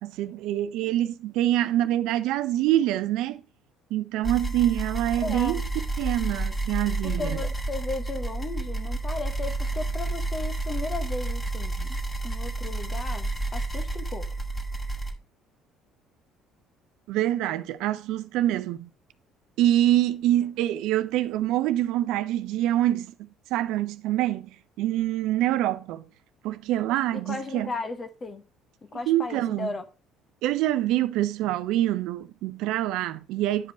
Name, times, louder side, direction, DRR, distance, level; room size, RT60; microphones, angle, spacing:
voice 1, 0.0-3.4 3.9-5.6 6.0-7.4 17.1-18.9 19.6-23.1 23.5-24.5 24.8-26.0 26.4-27.7 29.1-29.7 30.4-33.7, right 13 dB, 65° right, 0.5 m, -25 dB
sound 1, 4.2-15.1, right 2 dB, 15° left, 1.9 m, -30 dB
voice 2, 5.2-5.6 7.0-12.0 12.2-14.3 27.1-28.4 28.8-29.8, left 3 dB, 35° left, 1.3 m, -35 dB
9.6 x 5.1 x 4.3 m
hypercardioid pair, 55°, 0 cm